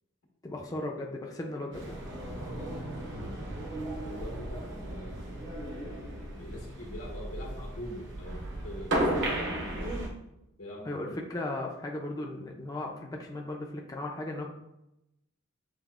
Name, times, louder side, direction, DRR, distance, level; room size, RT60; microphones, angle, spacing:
voice 1, 0.4-2.0 10.8-14.5, left 2 dB, 20° left, 0 dB, 0.4 m, -36 dB
sound 1, 1.7-10.1, right 1 dB, 60° right, 0.9 m, -35 dB
voice 2, 4.0-5.4 6.3-9.5 10.6-11.2, equal, 90° left, -2 dB, 1.3 m, -44 dB
7.0 x 2.9 x 2.4 m, 0.88 s
head